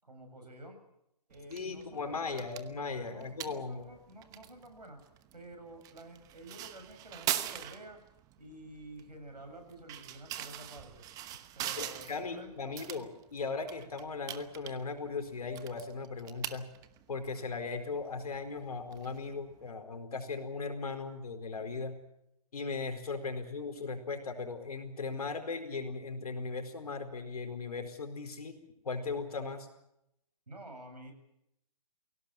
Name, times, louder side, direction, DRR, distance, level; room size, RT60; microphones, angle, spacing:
voice 1, 0.0-0.8 1.3-2.5 3.0-5.0 5.3-8.0 8.4-11.1 11.5-12.8 30.5-31.1, right 1 dB, 90° right, 4 dB, 7.2 m, -50 dB
sound 1, 1.3-19.7, right 13 dB, 15° right, 1.0 m, -43 dB
voice 2, 1.5-3.8 11.8-16.7 17.1-22.0 22.5-28.6 28.8-29.7, left 4 dB, 70° left, 7 dB, 4.5 m, -38 dB
22.5 x 17.5 x 8.9 m, 0.81 s
figure-of-eight pair, 140°, 20 cm